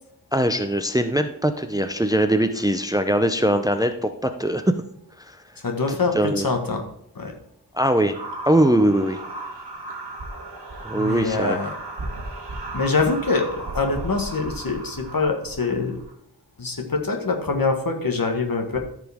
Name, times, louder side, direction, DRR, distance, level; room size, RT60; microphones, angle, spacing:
voice 1, 0.3-4.7 5.2-5.4 5.9-6.5 7.7-8.2 8.5-9.2 10.8-11.6, right 1 dB, 10° right, 8 dB, 0.5 m, -21 dB
voice 2, 5.6-6.8 7.1-7.4 10.9-11.7 12.7-16.0 16.6-18.8, left 3 dB, 55° left, 3 dB, 1.6 m, -24 dB
sound 1, 8.1-16.1, right 2 dB, 85° right, 1.8 m, -35 dB
13.5 x 5.0 x 3.5 m, 0.73 s
wide cardioid pair, 70°, 40 cm